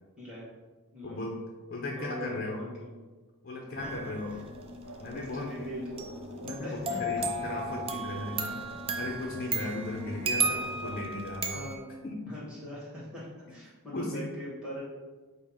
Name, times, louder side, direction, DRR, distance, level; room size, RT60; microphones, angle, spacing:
voice 1, 1.0-1.4 1.7-2.6 3.4-4.4 5.0-5.4 6.4-11.7 12.0-12.3 13.9-14.3, left 2 dB, 40° left, 0 dB, 0.5 m, -37 dB
voice 2, 2.0-2.9 3.8-3.9 5.1-5.8 6.6-7.0 11.5-11.9 12.3-14.8, equal, 5° right, -10 dB, 1.3 m, -41 dB
sound 1, 3.7-11.0, left 1 dB, 50° right, 0.9 m, -43 dB
sound 2, 3.8-4.2 6.0-11.8, right 3 dB, 25° right, 0.3 m, -34 dB
5.3 x 2.1 x 4.9 m, 1.3 s
head